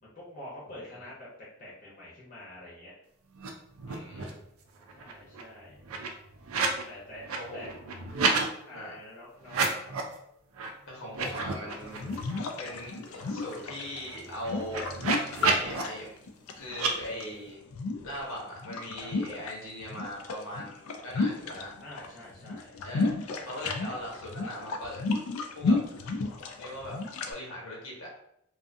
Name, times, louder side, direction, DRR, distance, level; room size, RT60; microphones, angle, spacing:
voice 1, 0.0-3.0 4.9-5.8 6.9-7.7 8.4-9.9 19.0-19.1 21.8-22.9, left 1 dB, 40° left, -7 dB, 0.7 m, -46 dB
voice 2, 0.7-1.1 3.9-4.4 7.3-7.7 8.7-9.0 10.8-12.1 12.6-14.9 15.6-16.1 16.5-17.6 18.0-21.8 22.8-25.0 25.5-25.8 26.6-27.0 27.3-28.1, left 1 dB, 70° left, -3 dB, 0.9 m, -40 dB
sound 1, 3.3-4.4 4.8-6.8 7.1-8.5 9.4-10.1 10.5-10.7 11.0-12.4 12.8-12.9 13.1-15.8 16.7-16.9, right 4 dB, 85° right, 0.4 m, -32 dB
sound 2, 11.8-17.2 17.7-19.5 19.8-22.1 22.3-27.3, left 3 dB, 85° left, 0.3 m, -32 dB
2.5 x 2.4 x 2.5 m, 0.77 s
head